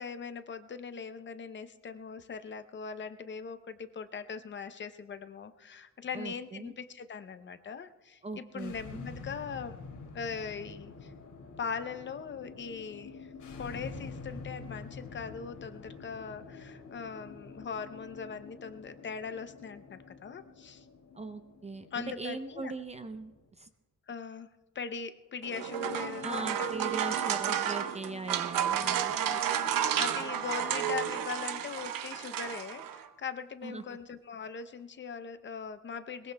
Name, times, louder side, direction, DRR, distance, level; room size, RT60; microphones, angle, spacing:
voice 1, 0.0-9.8 10.1-11.1 11.6-13.3 13.6-20.9 21.9-22.7 24.1-24.5 24.7-26.7 29.1-36.3, left 6 dB, 35° left, 10 dB, 0.6 m, -40 dB
voice 2, 6.1-6.7 8.2-9.0 21.2-23.3 23.6-23.7 26.2-29.1 33.6-33.8, right 3 dB, 20° right, 9 dB, 0.4 m, -40 dB
sound 1, 8.5-23.5, left 4 dB, 65° left, 2.4 m, -47 dB
sound 2, 25.4-33.0, right 9 dB, 85° right, 0.9 m, -32 dB
21.5 x 21.5 x 2.2 m, 1.2 s
wide cardioid pair, 175°, 33 cm